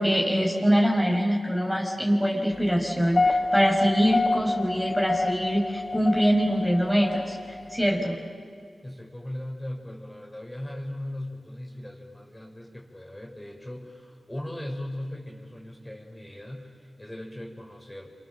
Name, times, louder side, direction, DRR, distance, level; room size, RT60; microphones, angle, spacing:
voice 1, 0.0-8.2, equal, 5° right, -1 dB, 5.4 m, -24 dB
sound 1, 2.9-7.8, left 3 dB, 45° left, 1.3 m, -28 dB
voice 2, 8.8-18.1, left 1 dB, 15° left, 0 dB, 5.6 m, -38 dB
29.5 x 26.0 x 7.4 m, 2.2 s
cardioid pair, 55°, 0 cm